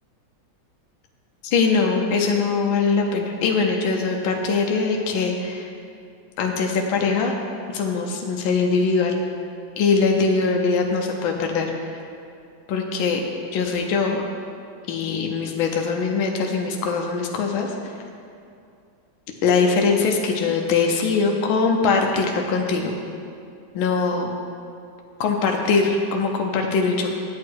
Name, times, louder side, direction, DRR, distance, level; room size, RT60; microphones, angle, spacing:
voice 1, 1.4-5.7 6.4-7.3 7.7-9.2 9.8-11.7 12.7-13.2 13.5-14.2 14.9-17.7 19.4-22.9 23.7-24.3 25.2-27.1, left 4 dB, 80° left, 2 dB, 1.6 m, -22 dB
9.6 x 8.4 x 4.6 m, 2.4 s
omnidirectional pair, 2.2 m